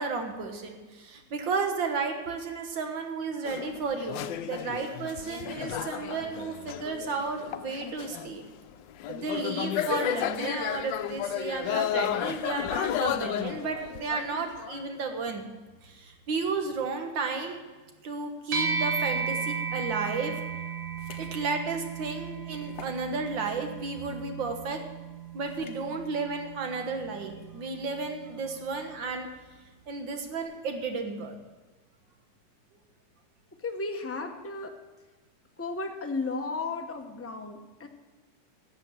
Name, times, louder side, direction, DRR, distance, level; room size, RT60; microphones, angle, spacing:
voice 1, 0.0-8.4 9.1-15.5 15.8-17.6 18.0-20.3 21.2-24.8 25.3-29.3 29.9-31.4, right 4 dB, 85° right, 4 dB, 2.1 m, -33 dB
Crowd Small Place, 3.4-8.5 8.9-14.9, left 11 dB, 80° left, 1.3 m, -33 dB
sound 1, 18.5-28.1, right 5 dB, 65° right, 1.6 m, -35 dB
sound 2, 20.9-21.3 21.8-21.9 22.6-23.1 23.9-24.3 25.5-25.8, left 5 dB, 50° left, 0.9 m, -48 dB
voice 2, 33.6-34.7 35.6-37.9, left 3 dB, 20° left, 4 dB, 0.3 m, -34 dB
12.0 x 7.5 x 7.4 m, 1.2 s
omnidirectional pair, 2.0 m